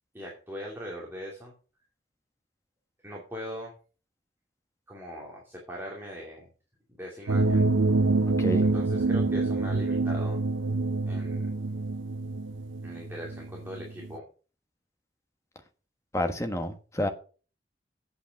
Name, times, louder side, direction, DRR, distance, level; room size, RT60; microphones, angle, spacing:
voice 1, 0.1-1.5 3.0-3.7 4.9-6.5 7.0-7.7 8.7-10.4 11.0-11.5 12.8-14.2, equal, 10° right, 2.5 m, -40 dB
sound 1, 7.3-14.1, right 3 dB, 85° right, 0.5 m, -26 dB
voice 2, 16.1-17.1, equal, 15° left, 1.3 m, -29 dB
8.3 x 8.3 x 6.5 m
head